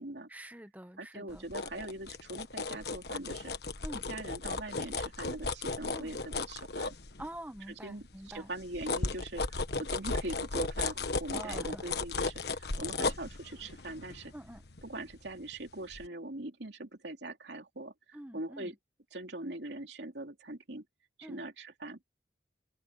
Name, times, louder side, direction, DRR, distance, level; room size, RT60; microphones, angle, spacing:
voice 1, 0.3-1.4 3.8-4.0 5.9-6.2 7.2-8.5 11.3-11.9 13.0-13.1 14.3-14.6 18.1-18.7 21.2-21.4, right 1 dB, 10° right, 1.1 m, -46 dB
voice 2, 1.0-3.5 4.1-7.0 7.8-14.3 14.8-18.7 19.1-20.8 21.2-22.0, right 2 dB, 75° right, 2.8 m, -42 dB
sound 1, 1.3-7.6 8.0-15.5 15.9-16.1, left 3 dB, 65° left, 1.4 m, -36 dB
open air
head